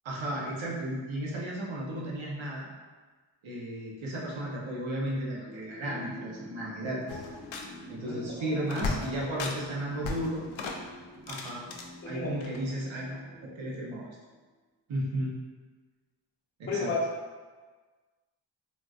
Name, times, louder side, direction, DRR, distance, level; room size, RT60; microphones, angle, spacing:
voice 1, 0.0-2.7 3.4-7.2 7.9-10.4 11.3-11.7 12.0-14.1 14.9-15.3 16.6-16.9, right 1 dB, 85° right, -4 dB, 0.8 m, -34 dB
sound 1, 5.5-14.2, left 1 dB, 10° right, 0.8 m, -48 dB
sound 2, 7.1-8.0 8.2-8.3 8.6-9.7 9.9-11.8 12.4-12.8, left 4 dB, 85° left, 0.5 m, -36 dB
voice 2, 8.0-8.5 9.0-9.4 12.0-12.3 16.7-17.0, left 4 dB, 25° left, -5 dB, 0.5 m, -34 dB
3.7 x 2.6 x 2.3 m, 1.3 s
wide cardioid pair, 95°, 45 cm